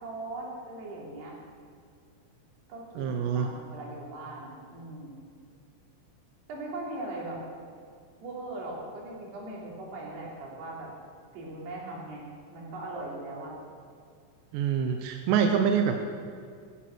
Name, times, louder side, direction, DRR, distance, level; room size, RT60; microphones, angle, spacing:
voice 1, 0.0-1.3 2.7-5.2 6.5-7.4 8.2-10.9 11.3-13.5, right 2 dB, 60° right, -4 dB, 5.3 m, -39 dB
voice 2, 3.0-3.5 14.5-16.0, right 7 dB, 75° right, 4 dB, 2.8 m, -25 dB
16.5 x 13.5 x 6.2 m, 2.1 s
omnidirectional pair, 5.6 m